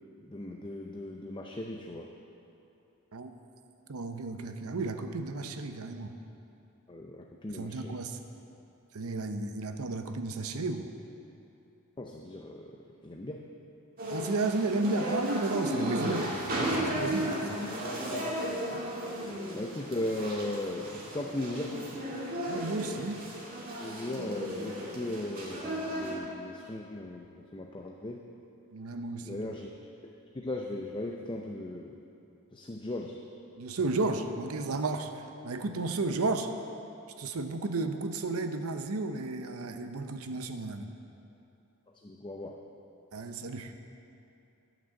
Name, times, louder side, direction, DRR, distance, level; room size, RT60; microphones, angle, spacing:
voice 1, 0.3-2.1 6.9-7.9 12.0-13.5 17.1-17.3 18.0-21.8 23.8-28.3 29.2-29.8 30.3-32.0 32.5-33.2 41.9-42.6, left 1 dB, 20° left, 1 dB, 0.5 m, -38 dB
voice 2, 3.9-6.2 7.5-8.2 8.9-10.9 14.1-16.4 16.9-17.6 22.5-23.2 28.7-29.4 33.6-36.5 37.2-40.9 43.1-43.7, right 3 dB, 75° right, 7 dB, 0.7 m, -33 dB
sound 1, 14.0-26.2, right 1 dB, 40° right, 1.9 m, -35 dB
11.5 x 6.1 x 7.5 m, 2.8 s
head